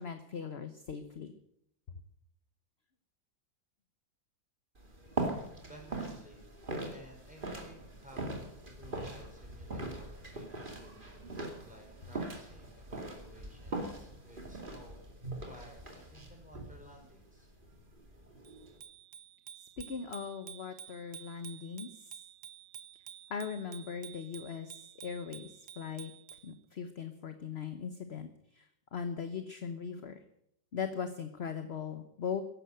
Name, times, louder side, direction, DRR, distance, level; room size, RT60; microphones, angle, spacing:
voice 1, 0.0-1.3 19.8-21.9 23.3-25.5 25.8-26.1 26.4-28.3 28.5-30.2 30.7-32.4, left 6 dB, 45° left, 9 dB, 1.0 m, -39 dB
sound 1, 4.8-18.8, right 2 dB, 25° right, 2.7 m, -41 dB
voice 2, 5.7-6.5 6.9-10.9 11.2-15.0 15.4-17.5, right 1 dB, 5° right, 0 dB, 5.8 m, -56 dB
Bicycle bell, 18.4-26.5, right 9 dB, 60° right, 1.1 m, -51 dB
15.0 x 11.5 x 7.7 m, 0.75 s
omnidirectional pair, 2.0 m